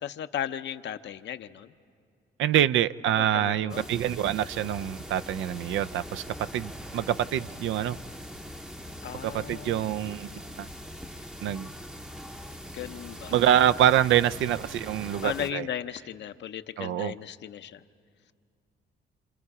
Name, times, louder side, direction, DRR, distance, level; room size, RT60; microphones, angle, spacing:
voice 1, 0.0-1.7 3.2-3.8 9.0-9.8 12.7-13.4 15.2-17.8, left 10 dB, 65° left, 10 dB, 0.7 m, -36 dB
voice 2, 2.4-8.0 9.2-10.3 10.6-10.7 11.4-11.7 13.3-15.7 16.8-17.1, right 11 dB, 75° right, 13 dB, 0.5 m, -25 dB
sound 1, 3.7-15.5, equal, 5° right, 0.7 m, -42 dB
28.0 x 27.5 x 4.8 m, 2.2 s
cardioid pair, 90°, 20 cm